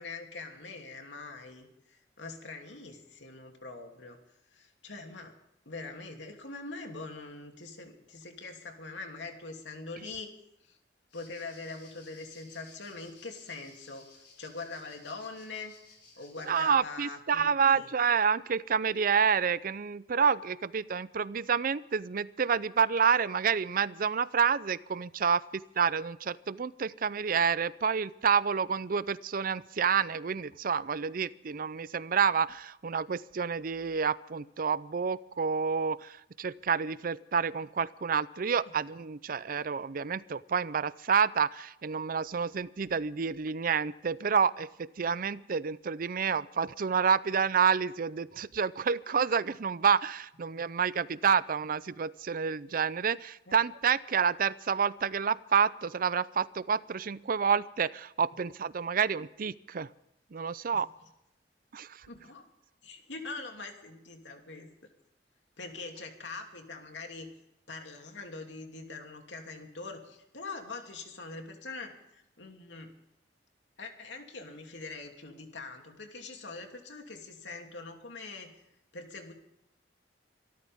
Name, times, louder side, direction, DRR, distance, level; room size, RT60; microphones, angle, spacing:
voice 1, 0.0-4.2 4.5-5.4 5.6-10.3 10.6-10.8 11.1-14.1 14.4-15.7 16.2-17.9 53.5-53.6 60.7-60.8 62.1-62.5 62.8-64.7 65.6-67.3 67.7-73.0 73.8-78.6 78.9-79.3, left 3 dB, 90° left, 3 dB, 2.9 m, -43 dB
sound 1, 11.1-16.7, left 4 dB, 60° left, 6.3 m, -57 dB
voice 2, 16.5-59.9 60.3-60.9 61.7-62.1, right 6 dB, 50° right, 18 dB, 0.5 m, -29 dB
25.0 x 13.5 x 3.6 m, 0.82 s
head